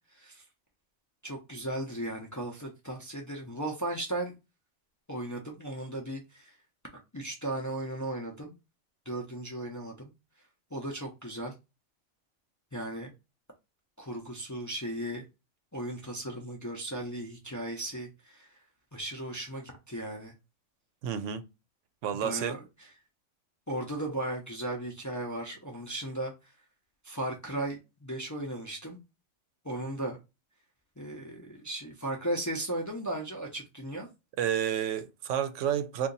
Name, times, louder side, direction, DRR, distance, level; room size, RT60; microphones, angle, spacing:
voice 1, 1.2-4.4 5.1-6.5 7.1-8.5 9.1-10.1 10.7-11.5 12.7-13.1 14.0-15.2 15.7-18.5 18.9-20.3 22.2-22.6 23.7-26.3 27.0-29.0 29.6-30.2 31.0-34.1, right 1 dB, 25° left, 0.4 m, -36 dB
voice 2, 21.0-21.4 22.0-22.5 34.4-36.1, right 9 dB, 90° right, 0.9 m, -30 dB
2.8 x 2.5 x 3.8 m
omnidirectional pair, 1.2 m